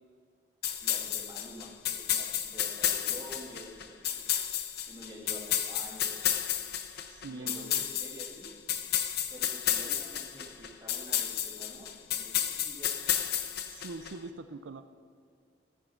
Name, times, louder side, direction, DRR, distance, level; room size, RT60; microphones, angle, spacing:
sound 1, 0.6-14.1, left 10 dB, 55° left, 0.7 m, -32 dB
voice 1, 0.8-4.2 4.9-6.2 7.2-8.5 9.3-12.4 12.6-12.9, equal, 20° right, -1 dB, 2.0 m, -48 dB
voice 2, 7.1-7.8 13.7-14.8, right 3 dB, 80° right, 9 dB, 0.5 m, -43 dB
14.0 x 8.9 x 5.7 m, 2.1 s
head